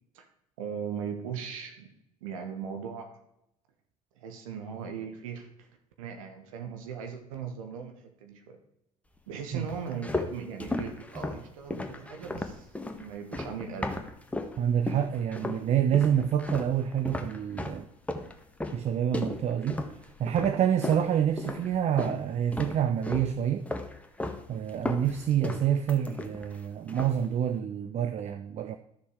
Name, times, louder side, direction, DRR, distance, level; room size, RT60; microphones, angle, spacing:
voice 1, 0.6-1.9 2.2-3.2 4.2-5.7 6.0-8.6 9.3-12.7 13.0-14.0, right 7 dB, 70° right, 1.4 m, -38 dB
sound 1, 9.7-14.6 14.9-15.6 15.9-22.2 22.5-23.3 23.7-24.4 24.7-26.6 26.9-27.2, left 2 dB, 5° left, 1.4 m, -35 dB
voice 2, 14.6-17.9 18.7-19.8 20.2-23.7 24.5-28.8, right 9 dB, 35° right, 0.7 m, -27 dB
12.5 x 7.0 x 4.8 m
figure-of-eight pair, 60°, 18 cm